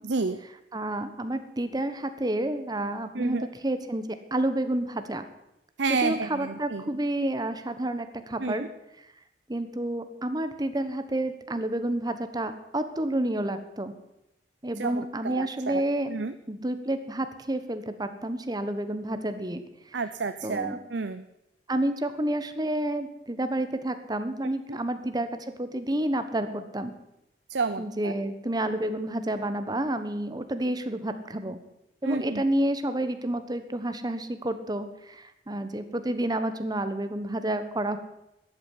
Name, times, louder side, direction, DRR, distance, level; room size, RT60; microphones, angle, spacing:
voice 1, 0.0-0.4 3.1-3.5 5.8-6.8 8.4-8.7 14.8-15.8 16.1-16.3 19.9-21.2 27.5-28.1 32.0-32.4, right 4 dB, 90° right, 10 dB, 0.7 m, -30 dB
voice 2, 0.7-4.0 4.3-5.3 5.9-8.7 9.5-13.9 14.6-16.1 16.5-19.6 20.4-20.8 21.7-25.3 25.6-26.9 27.8-31.6 32.0-38.0, right 1 dB, 25° right, 9 dB, 1.2 m, -29 dB
13.0 x 8.8 x 9.8 m, 0.86 s
head